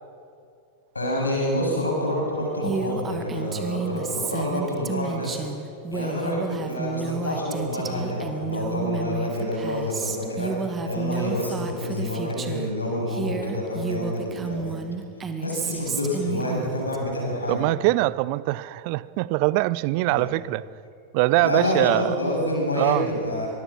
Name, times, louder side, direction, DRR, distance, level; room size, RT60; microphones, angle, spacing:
voice 1, 0.9-5.4 5.9-14.8 15.4-17.6 20.1-20.3 21.3-23.5, left 1 dB, 80° left, 7.3 m, -28 dB
Female speech woman speaking, 2.6-12.7 13.1-17.0, right 4 dB, 20° right, 2.0 m, -31 dB
voice 2, 17.5-20.6 21.1-22.1 22.8-23.1, right 20 dB, 45° right, 0.6 m, -23 dB
25.0 x 20.0 x 6.2 m
figure-of-eight pair, 90°, 0 cm